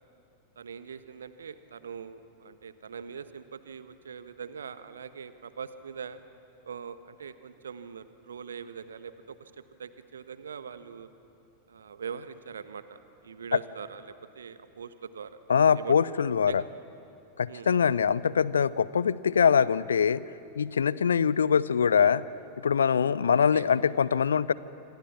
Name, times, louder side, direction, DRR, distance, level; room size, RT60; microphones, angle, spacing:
voice 1, 0.6-6.2 6.6-9.5 9.8-11.1 11.7-15.4 15.7-16.0 16.5-16.6 17.5-17.7 23.3-23.7, right 6 dB, 70° right, 12 dB, 1.2 m, -42 dB
voice 2, 15.5-16.6 17.4-20.2 20.6-22.2 22.6-24.5, left 7 dB, 70° left, 19 dB, 0.6 m, -23 dB
28.0 x 26.0 x 7.3 m, 2.6 s
figure-of-eight pair, 90°, 0 cm